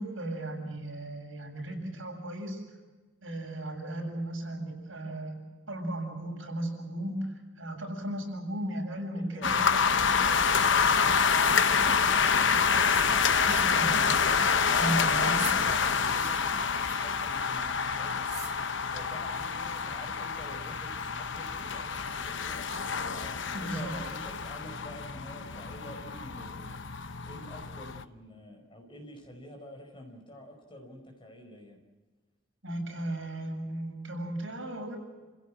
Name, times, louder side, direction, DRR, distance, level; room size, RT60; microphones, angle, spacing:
voice 1, 0.0-2.6 3.2-10.5 13.3-14.2 14.7-15.5 23.5-24.0 32.6-35.0, right 1 dB, 80° right, 1 dB, 7.3 m, -36 dB
voice 2, 9.1-9.7 10.7-13.1 14.5-18.3 18.6-22.5 23.1-31.8, equal, 25° left, 3 dB, 5.0 m, -47 dB
sound 1, 9.4-28.0, left 6 dB, 70° left, 1.0 m, -27 dB
sound 2, 12.9-13.1 13.5-13.8 14.1-14.3 14.7-14.9 15.3-15.6 16.1-16.3 16.8-17.1 18.2-18.6, right 7 dB, 35° right, 4.7 m, -43 dB
29.0 x 16.5 x 7.6 m, 1.3 s
head